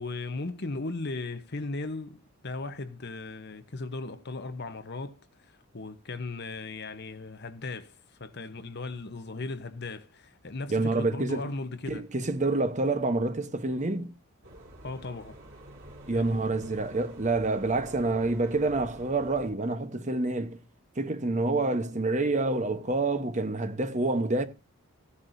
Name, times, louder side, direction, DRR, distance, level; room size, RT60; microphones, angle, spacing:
voice 1, 0.0-12.1 14.8-15.4 16.1-16.4, left 3 dB, 50° left, 1.0 m, -37 dB
voice 2, 10.7-11.5 11.9-14.1 16.1-20.6 21.0-24.5, right 2 dB, 35° right, 1.0 m, -27 dB
sound 1, 14.4-19.5, right 1 dB, 55° right, 3.5 m, -48 dB
15.5 x 9.8 x 2.7 m
head